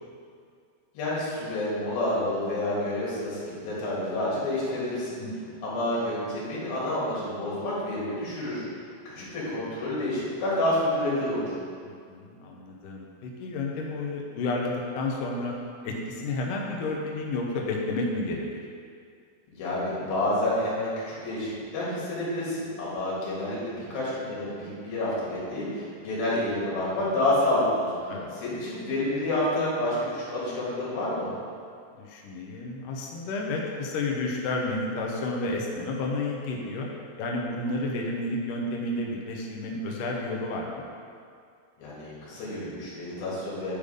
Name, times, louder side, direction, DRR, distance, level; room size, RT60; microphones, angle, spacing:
voice 1, 1.0-5.2 5.6-8.6 9.1-11.5 19.5-27.9 28.4-31.3 41.8-43.7, left 1 dB, 60° left, -7 dB, 3.8 m, -29 dB
voice 2, 5.2-5.6 9.2-9.3 11.8-15.5 15.8-18.5 28.1-28.3 32.0-36.9 37.2-40.9, left 2 dB, 80° left, -1 dB, 1.8 m, -31 dB
8.7 x 5.2 x 5.0 m, 2.2 s
omnidirectional pair, 4.8 m